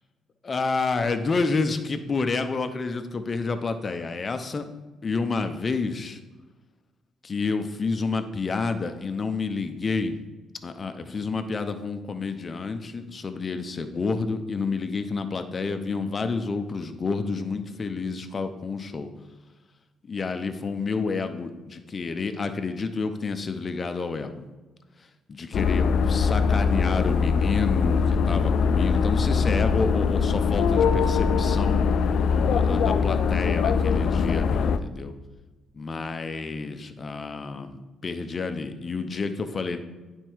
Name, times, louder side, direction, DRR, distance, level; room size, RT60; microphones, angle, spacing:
voice 1, 0.5-4.6 5.0-6.2 7.2-10.2 10.6-19.1 20.0-24.4 25.3-31.8 32.5-35.1 35.7-39.8, left 4 dB, 35° left, 8 dB, 0.7 m, -29 dB
sound 1, 25.5-34.8, left 5 dB, 70° left, 0.4 m, -22 dB
9.1 x 4.4 x 4.6 m, 1.2 s
cardioid pair, 90°, 0 cm